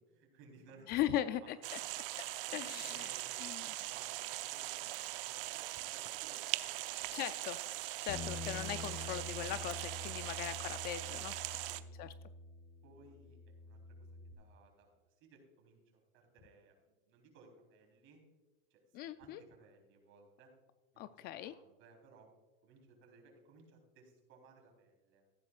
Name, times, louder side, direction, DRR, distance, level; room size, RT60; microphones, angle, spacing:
voice 1, 0.1-0.9 1.4-1.9 2.5-6.8 7.3-7.5 11.6-11.9 12.8-14.1 14.4-14.9 15.2-18.2 18.7-20.5 20.9-22.3 22.6-25.2, right 3 dB, 45° right, 2 dB, 3.8 m, -62 dB
voice 2, 0.9-1.8 2.5-3.1 3.4-3.7 7.1-7.6 8.0-11.7 12.0-12.1 18.9-19.4 21.0-21.5, left 12 dB, 35° left, 13 dB, 0.4 m, -39 dB
sound 1, 1.6-11.8, right 17 dB, 70° right, 0.7 m, -41 dB
Bass guitar, 8.1-14.3, left 2 dB, 70° left, 1.5 m, -47 dB
14.5 x 11.0 x 2.4 m, 1.2 s
supercardioid pair, 135°, 29 cm